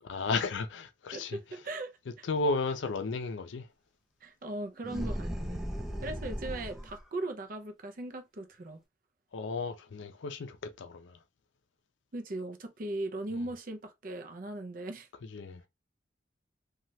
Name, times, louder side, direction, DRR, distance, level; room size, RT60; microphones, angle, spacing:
voice 1, 0.0-1.4 2.2-3.7 9.3-11.2 15.3-15.6, left 3 dB, 80° left, 0.4 m, -33 dB
voice 2, 1.1-1.9 2.2-2.3 4.2-5.6 6.0-8.8 12.1-15.1, right 2 dB, 50° right, 0.5 m, -38 dB
sound 1, 4.8-7.0, equal, ahead, 0.5 m, -36 dB
2.8 x 2.3 x 3.0 m
head